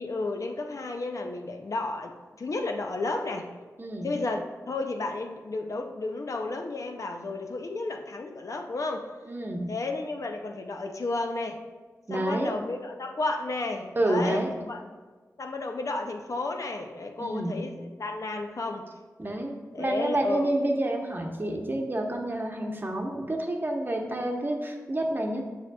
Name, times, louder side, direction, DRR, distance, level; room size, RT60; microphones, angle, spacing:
voice 1, 0.0-3.5 4.0-9.1 9.7-11.6 12.1-14.8 15.4-18.9 19.7-20.5, left 2 dB, 60° left, 4 dB, 0.6 m, -32 dB
voice 2, 3.8-4.2 9.3-9.7 12.1-12.5 14.0-14.5 17.2-17.6 19.2-25.4, right 1 dB, 35° right, 2 dB, 0.9 m, -29 dB
7.3 x 5.9 x 2.3 m, 1.4 s
wide cardioid pair, 70°, 6 cm